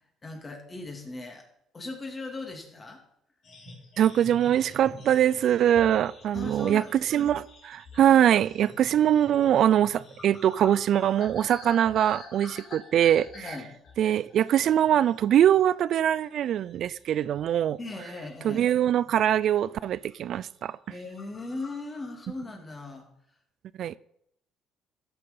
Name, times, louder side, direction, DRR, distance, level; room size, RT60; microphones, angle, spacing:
voice 1, 0.2-1.5 1.7-3.0 6.3-6.9 13.3-13.8 17.8-18.6 20.9-23.1, left 2 dB, 25° left, 2.9 m, -38 dB
sound 1, 3.4-15.1 15.5-15.7 16.2-17.7 18.0-18.7 19.3-19.5 19.8-20.2 20.4-20.6 20.8-20.9 21.2-22.6, left 3 dB, 50° left, 3.7 m, -48 dB
voice 2, 4.0-13.6 14.0-17.8 18.4-20.8 23.8-23.9, right 10 dB, 60° right, 0.3 m, -23 dB
14.0 x 6.7 x 5.6 m
cardioid pair, 105°, 0 cm